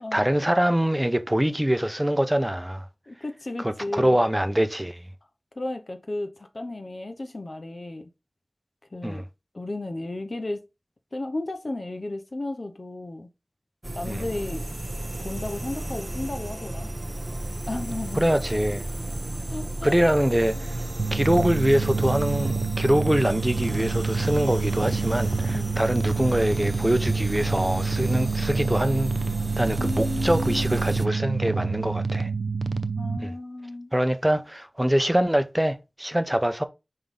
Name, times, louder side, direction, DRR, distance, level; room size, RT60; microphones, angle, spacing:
voice 1, 0.0-2.8 3.6-5.0 9.0-9.2 14.1-14.2 18.1-18.9 19.8-20.8 21.1-29.1 29.6-32.3 33.2-33.3 33.9-36.6, equal, 10° right, 0.8 m, -24 dB
voice 2, 3.1-4.2 5.6-8.1 8.9-9.2 9.5-10.6 11.1-13.3 13.9-14.6 15.2-16.9 17.7-18.3 19.5-20.0 25.5-25.7 29.8-30.8 33.0-33.9, left 2 dB, 55° left, 0.8 m, -33 dB
sound 1, 13.8-31.1, right 1 dB, 35° right, 0.4 m, -33 dB
sound 2, 21.0-33.2, right 4 dB, 90° right, 0.5 m, -27 dB
5.5 x 3.7 x 5.4 m
wide cardioid pair, 65°, 0 cm